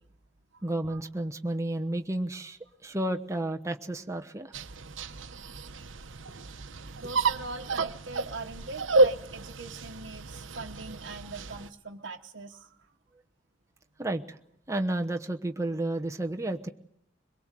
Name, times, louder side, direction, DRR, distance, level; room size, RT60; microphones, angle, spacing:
voice 1, 0.6-4.5 6.3-6.4 14.0-14.4 14.7-16.7, right 1 dB, 15° right, 4 dB, 1.0 m, -32 dB
sound 1, 4.5-11.7, right 3 dB, 80° right, 1.0 m, -30 dB
voice 2, 7.0-12.9, right 3 dB, 65° right, -1 dB, 1.2 m, -42 dB
22.5 x 22.5 x 7.5 m, 0.75 s
head